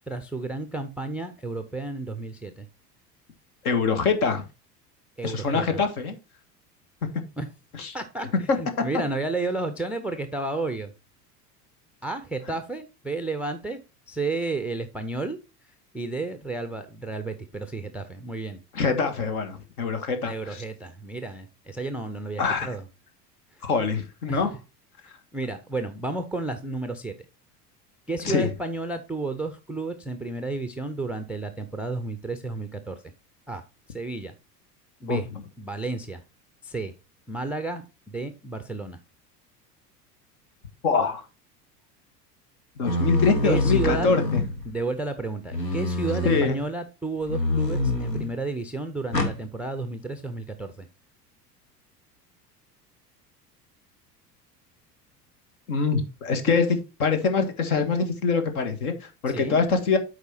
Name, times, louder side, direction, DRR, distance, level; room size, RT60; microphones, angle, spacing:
voice 1, 0.1-2.7 5.2-5.8 7.4-7.5 7.9-8.3 8.6-10.9 12.0-13.8 14.1-15.4 15.9-18.6 20.2-22.9 24.3-24.4 25.0-27.1 28.1-33.0 33.5-33.6 33.9-34.3 35.0-35.3 35.6-36.2 36.6-36.9 37.3-39.0 43.4-44.1 44.6-50.9 59.3-59.6, right 3 dB, 5° right, 0.3 m, -32 dB
voice 2, 3.6-4.5 5.2-6.2 7.7-8.0 8.5-8.6 18.7-20.6 22.4-22.7 23.6-24.5 28.2-28.5 35.1-35.4 40.8-41.2 42.8-44.4 46.3-46.6 55.7-60.0, left 5 dB, 65° left, 1.7 m, -24 dB
sound 1, 42.8-44.8 45.5-46.5 47.3-48.3 49.1-49.4, left 2 dB, 85° left, 1.4 m, -25 dB
8.0 x 4.9 x 4.3 m
figure-of-eight pair, 75°, 48 cm